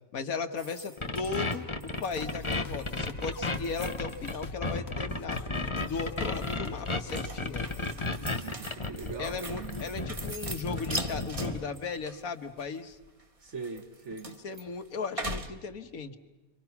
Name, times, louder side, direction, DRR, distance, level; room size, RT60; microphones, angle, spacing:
voice 1, 0.1-1.7 2.0-5.4 5.8-7.7 9.2-13.0 14.3-16.2, left 4 dB, 80° left, 6 dB, 1.7 m, -36 dB
sound 1, 0.6-4.6 5.0-5.8 6.2-15.5, right 2 dB, 25° right, 1.2 m, -42 dB
sound 2, 1.0-11.6, left 2 dB, 20° left, 1.3 m, -33 dB
sound 3, 2.1-8.4, left 4 dB, 50° left, 1.2 m, -43 dB
voice 2, 8.1-10.0 13.4-14.3, right 4 dB, 55° right, 3 dB, 1.9 m, -41 dB
29.5 x 24.5 x 5.9 m, 1.1 s
omnidirectional pair, 1.5 m